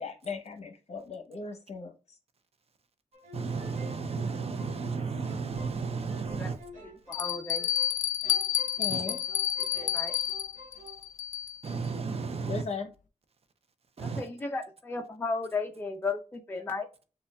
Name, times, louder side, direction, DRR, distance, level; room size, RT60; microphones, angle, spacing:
voice 1, 0.0-2.2 8.8-9.2 12.5-12.9, left 4 dB, 55° left, 0.9 m, -38 dB
sound 1, 3.1-8.0 8.2-11.0, left 1 dB, 80° right, 1.4 m, -49 dB
voice 2, 3.3-6.6 8.9-9.0 10.2-10.3 11.6-12.6 14.0-14.3, right 5 dB, 50° right, 0.6 m, -33 dB
Bell, 5.5-5.6 6.3-6.4 7.1-11.7, left 9 dB, 75° left, 0.4 m, -30 dB
voice 3, 6.8-7.7 9.0-9.2 9.7-10.1 14.0-16.9, left 3 dB, 15° left, 0.4 m, -35 dB
6.8 x 2.3 x 2.3 m
wide cardioid pair, 130°, 13 cm